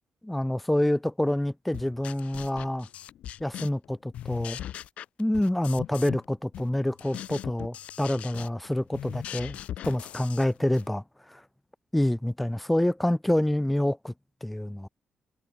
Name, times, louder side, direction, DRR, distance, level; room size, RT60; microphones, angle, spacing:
voice 1, 0.2-2.9 3.4-4.6 5.2-9.6 9.8-11.4 11.9-14.1 14.4-14.9, left 1 dB, 5° left, 0.9 m, -27 dB
sound 1, 1.7-3.9 4.1-6.3 6.5-10.9, left 11 dB, 85° left, 4.1 m, -40 dB
wide cardioid pair, 180°, 2 cm